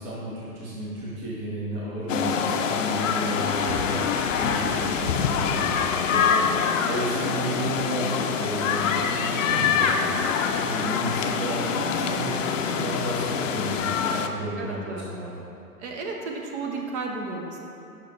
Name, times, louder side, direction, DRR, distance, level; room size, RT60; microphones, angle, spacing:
voice 1, 0.0-6.5 6.8-15.3, right 1 dB, 15° right, -7 dB, 0.5 m, -33 dB
sound 1, 2.1-14.3, left 6 dB, 55° left, 0.5 m, -25 dB
voice 2, 2.1-2.6 6.1-6.5 11.2-11.7 12.0-12.5 14.6-15.0 15.8-17.6, right 4 dB, 45° right, 0 dB, 1.0 m, -34 dB
5.9 x 4.7 x 3.7 m, 2.7 s
hypercardioid pair, 130°, 46 cm